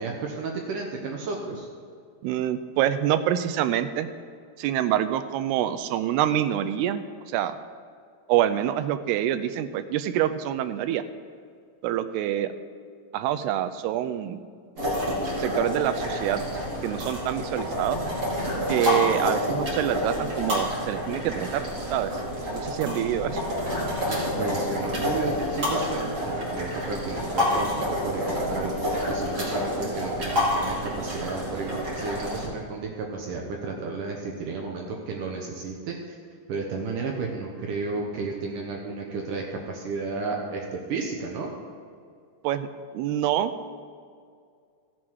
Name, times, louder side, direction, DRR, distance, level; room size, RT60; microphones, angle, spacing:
voice 1, 0.0-1.7 24.1-28.7 29.1-36.2 36.5-41.5, right 4 dB, 65° right, 0 dB, 2.2 m, -33 dB
voice 2, 2.2-4.1 4.6-7.6 8.3-11.0 11.8-12.5 13.1-14.4 15.4-16.4 16.8-18.0 18.7-22.1 22.5-23.4 42.4-42.7 42.9-43.5, right 11 dB, 90° right, 11 dB, 2.6 m, -26 dB
sound 1, 14.8-32.5, left 1 dB, 25° right, 1.9 m, -28 dB
15.5 x 7.4 x 4.7 m, 2.2 s
omnidirectional pair, 4.6 m